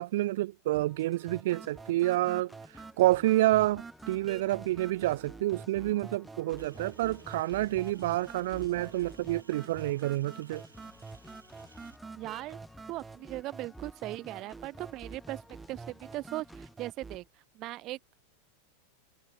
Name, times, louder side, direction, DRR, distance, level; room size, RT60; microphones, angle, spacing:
voice 1, 0.0-10.6, right 16 dB, 55° right, 0.3 m, -28 dB
sound 1, 0.7-16.7, left 2 dB, 5° left, 5.7 m, -56 dB
sound 2, 1.3-17.3, right 4 dB, 15° right, 2.0 m, -47 dB
sound 3, 6.6-12.0, right 3 dB, 80° right, 5.3 m, -59 dB
voice 2, 12.2-12.6 12.9-15.4 15.7-17.2 17.5-18.0, right 17 dB, 35° right, 0.8 m, -38 dB
figure-of-eight pair, 90°, 0 cm